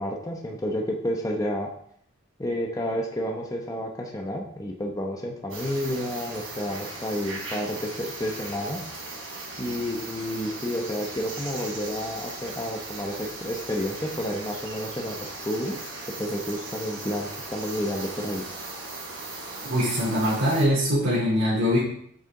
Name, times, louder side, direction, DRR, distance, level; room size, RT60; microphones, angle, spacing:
voice 1, 0.0-1.7 2.4-8.8 9.6-15.2 15.5-15.8 16.2-18.4, equal, 15° left, 1 dB, 0.9 m, -30 dB
sound 1, 5.5-20.6, right 3 dB, 90° right, 3.3 m, -38 dB
voice 2, 19.7-21.8, equal, 70° right, -8 dB, 3.2 m, -22 dB
8.2 x 6.8 x 3.7 m, 0.66 s
head